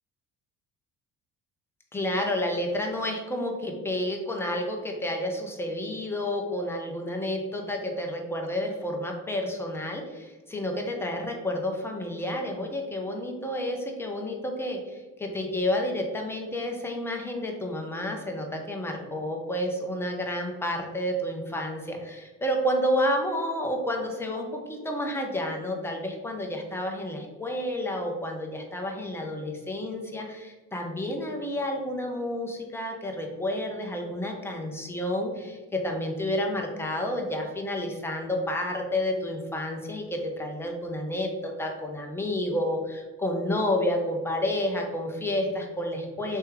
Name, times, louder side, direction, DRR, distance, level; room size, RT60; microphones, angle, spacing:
voice 1, 1.9-46.4, left 1 dB, 5° left, 1 dB, 0.7 m, -30 dB
3.2 x 2.8 x 3.5 m, 1.2 s
hypercardioid pair, 60°, 42 cm